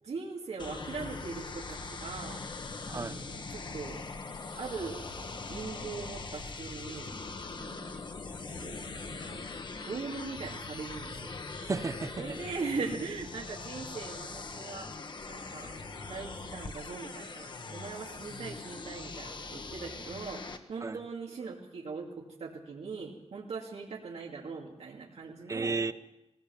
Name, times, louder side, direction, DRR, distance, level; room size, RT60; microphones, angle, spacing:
voice 1, 0.0-2.6 2.9-4.0 4.6-5.0 5.5-7.2 7.6-8.1 8.5-9.5 9.8-11.4 12.2-14.9 15.3-15.8 16.1-25.8, right 4 dB, 90° right, 2.6 m, -40 dB
sound 1, 0.6-20.6, left 3 dB, 45° left, 1.3 m, -42 dB
voice 2, 2.8-3.2 11.6-12.4 20.8-21.0 25.5-25.9, right 3 dB, 30° right, 0.7 m, -33 dB
21.0 x 18.0 x 7.2 m
wide cardioid pair, 175°, 11 cm